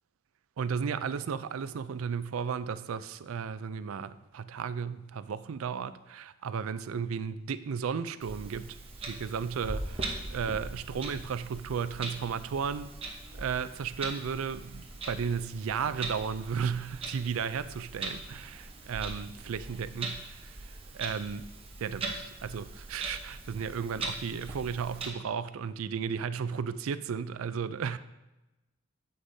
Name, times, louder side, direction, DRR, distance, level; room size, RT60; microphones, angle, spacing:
voice 1, 0.6-8.8 9.1-12.9 13.4-20.5 20.9-21.4 21.8-28.0, right 6 dB, 90° right, 0.4 m, -34 dB
Clock, 8.2-25.1, right 3 dB, 25° right, 0.9 m, -41 dB
9.5 x 7.9 x 2.7 m
head